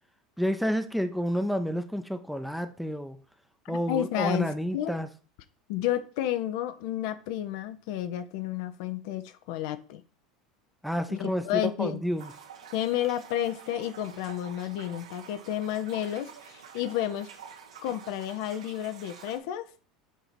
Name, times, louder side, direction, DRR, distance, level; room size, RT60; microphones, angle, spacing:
voice 1, 0.4-3.2 3.7-5.1 10.8-12.3, equal, ahead, 0.7 m, -30 dB
voice 2, 3.6-4.9 5.7-10.0 11.1-12.0 12.7-17.3 17.8-19.7, left 12 dB, 60° left, 0.7 m, -31 dB
sound 1, 12.2-19.4, right 7 dB, 75° right, 1.5 m, -48 dB
7.5 x 2.9 x 5.1 m
hypercardioid pair, 80°, 3 cm